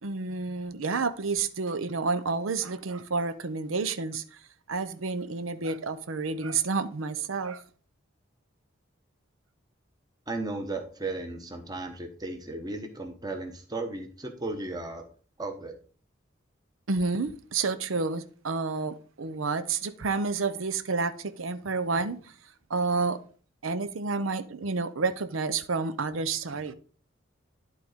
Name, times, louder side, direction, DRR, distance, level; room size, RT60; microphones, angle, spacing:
voice 1, 0.0-4.4 4.7-7.6 16.9-22.3 22.7-23.2 23.6-26.7, right 4 dB, 90° right, 0.7 m, -30 dB
voice 2, 10.3-15.0 15.4-15.8, right 2 dB, 20° right, 1.1 m, -35 dB
11.5 x 3.9 x 5.0 m
head